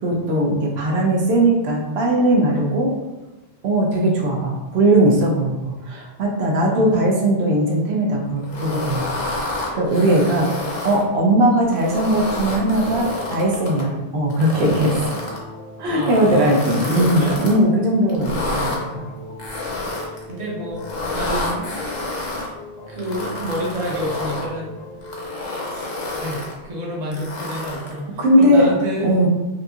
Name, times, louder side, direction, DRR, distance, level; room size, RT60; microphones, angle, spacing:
voice 1, 0.0-2.9 3.6-9.3 9.7-15.0 15.8-19.0 25.4-25.5 28.2-28.7 29.0-29.3, right 1 dB, 85° right, -1 dB, 0.9 m, -19 dB
voice 2, 6.6-7.0 15.9-17.4 19.8-22.4 22.9-24.7 25.7-29.2, equal, 45° right, -3 dB, 0.7 m, -29 dB
sound 1, 8.5-11.0 11.6-13.8 14.3-15.4 15.9-17.6 18.1-18.8 19.4-20.2 20.8-22.5 23.0-24.5 25.0-26.5 27.1-28.0, left 2 dB, 50° left, 0.7 m, -29 dB
sound 2, 12.0-26.5, left 1 dB, 80° left, 0.9 m, -39 dB
2.8 x 2.6 x 2.3 m, 1.1 s
omnidirectional pair, 1.0 m